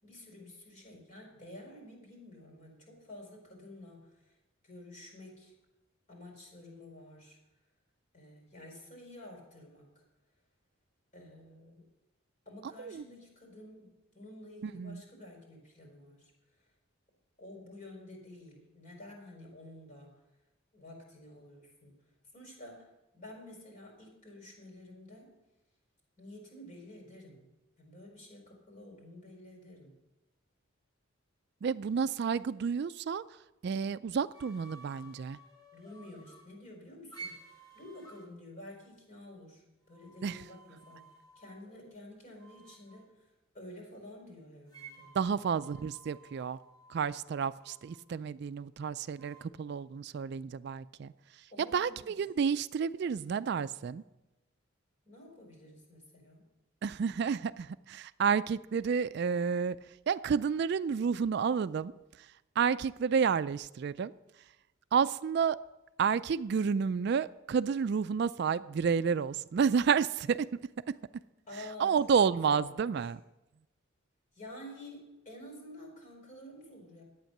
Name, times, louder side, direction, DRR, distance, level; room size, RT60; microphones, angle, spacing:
voice 1, 0.0-4.3 4.6-5.5 6.1-7.4 8.1-10.0 11.1-11.8 12.5-16.3 17.4-20.1 20.7-22.0 22.3-22.9 23.1-25.3 26.2-27.4 27.8-29.9 35.7-39.6 39.9-41.0 41.4-43.1 43.5-45.1 51.5-52.1 55.0-56.4 71.5-71.9 72.5-72.9 74.3-77.0, left 1 dB, 40° left, 0 dB, 4.4 m, -50 dB
voice 2, 14.6-15.0 31.6-33.2 33.6-35.4 40.2-40.4 45.1-46.6 46.9-51.1 51.6-54.0 56.8-59.8 60.1-61.9 62.6-64.1 64.9-65.6 66.0-70.5 71.8-73.2, right 6 dB, 55° right, 15 dB, 0.3 m, -30 dB
sound 1, 34.3-36.5 37.1-38.3 39.9-42.0 42.4-43.1 44.7-48.0 49.2-49.5, right 3 dB, 20° left, 2.2 m, -53 dB
12.0 x 8.9 x 6.6 m, 0.98 s
head